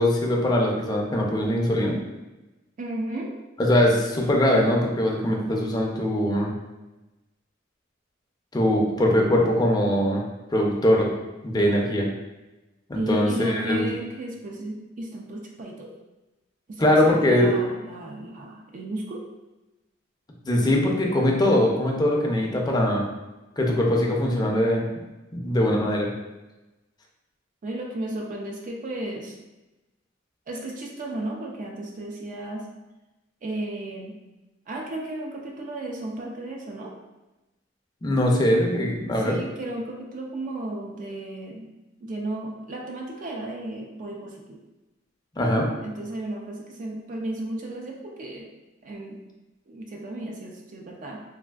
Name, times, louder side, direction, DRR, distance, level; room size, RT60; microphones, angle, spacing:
voice 1, 0.0-2.0 3.6-6.5 8.5-10.2 10.5-11.1 11.4-12.1 12.9-13.9 16.8-17.5 20.4-23.0 23.6-24.8 25.3-26.1 38.0-39.4 45.4-45.7, left 1 dB, 20° left, -1 dB, 0.4 m, -21 dB
voice 2, 2.8-3.3 12.9-15.9 16.7-19.3 27.6-29.4 30.5-32.7 33.4-34.2 34.7-36.9 39.1-41.7 42.0-44.6 45.8-48.5 48.8-49.2 49.7-51.2, right 1 dB, 40° right, 0 dB, 0.3 m, -34 dB
3.3 x 2.4 x 2.3 m, 1.0 s
head